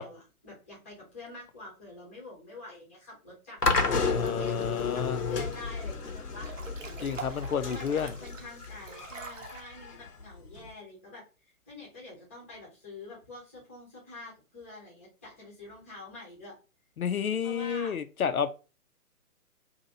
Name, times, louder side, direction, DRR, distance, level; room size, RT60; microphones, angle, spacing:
voice 1, 0.0-6.6 7.2-16.5 17.4-18.0, left 2 dB, 10° left, 0.6 m, -47 dB
sound 1, 3.6-10.7, left 4 dB, 85° left, 0.9 m, -32 dB
voice 2, 4.1-5.2 7.0-8.1 17.0-18.5, left 7 dB, 70° left, 0.5 m, -30 dB
Breathing / Bathtub (filling or washing) / Splash splatter, 4.1-4.9 5.3-5.9 6.3-9.6, right 5 dB, 55° right, 0.7 m, -46 dB
2.8 x 2.5 x 3.8 m
figure-of-eight pair, 135°, 45 cm